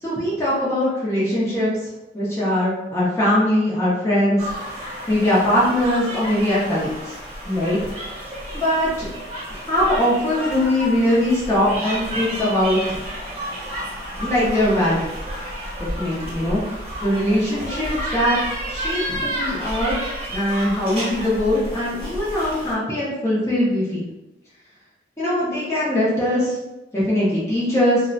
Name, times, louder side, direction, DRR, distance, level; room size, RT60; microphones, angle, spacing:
voice 1, 0.0-1.7 2.1-4.4 5.1-7.1 7.4-7.8 8.5-9.1 9.7-13.0 14.2-15.1 15.8-16.6 17.0-18.4 18.7-20.0 20.3-24.0 25.2-26.5 26.9-28.0, left 1 dB, 15° left, -9 dB, 0.6 m, -21 dB
sound 1, 4.4-22.7, equal, 35° right, 0.8 m, -31 dB
2.4 x 2.0 x 2.5 m, 0.97 s
head